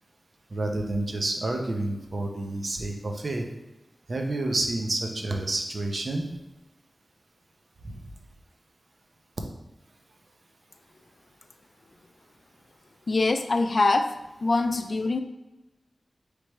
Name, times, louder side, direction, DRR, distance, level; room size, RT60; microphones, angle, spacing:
voice 1, 0.5-3.5 4.1-6.3 7.8-8.0, right 2 dB, 60° right, 3 dB, 0.7 m, -29 dB
voice 2, 13.1-14.1 14.4-15.2, left 3 dB, 60° left, 8 dB, 0.4 m, -23 dB
3.3 x 3.1 x 4.3 m, 0.99 s
cardioid pair, 45°, 0 cm